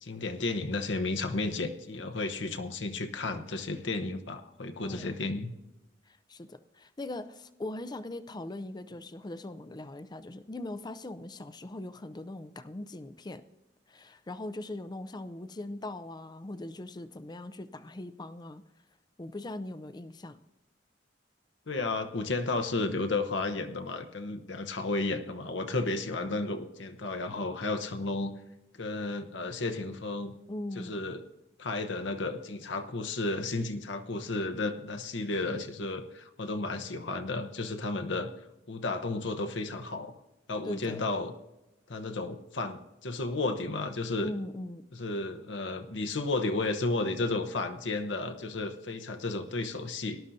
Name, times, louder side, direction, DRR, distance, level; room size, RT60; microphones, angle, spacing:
voice 1, 0.0-5.5 21.7-28.3 28.8-30.3 30.8-31.2 31.6-38.3 38.7-40.1 40.5-41.3 41.9-44.3 44.9-50.2, left 2 dB, 75° left, 7 dB, 0.9 m, -33 dB
voice 2, 4.8-5.1 6.1-13.4 13.9-18.6 19.2-20.4 30.5-31.0 40.6-41.0 44.2-44.8, left 1 dB, 25° left, 12 dB, 0.5 m, -40 dB
18.5 x 11.5 x 2.7 m, 0.99 s
head